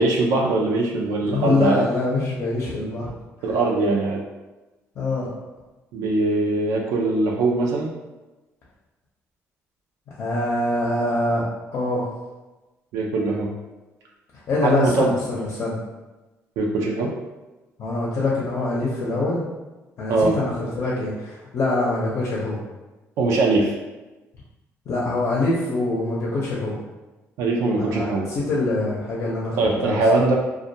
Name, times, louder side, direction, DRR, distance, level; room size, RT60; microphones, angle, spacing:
voice 1, 0.0-1.8 3.4-4.2 5.9-7.9 12.9-13.5 14.6-15.2 16.6-17.1 20.1-20.3 23.2-23.7 27.4-28.2 29.6-30.3, right 3 dB, 90° right, -1 dB, 0.4 m, -21 dB
voice 2, 1.2-3.1 5.0-5.3 10.2-11.4 11.7-12.1 14.3-15.8 17.8-19.4 20.0-22.6 24.9-26.8 27.8-30.0, left 2 dB, 55° left, -5 dB, 0.7 m, -24 dB
2.3 x 2.2 x 2.7 m, 1.1 s
cardioid pair, 100°, 5 cm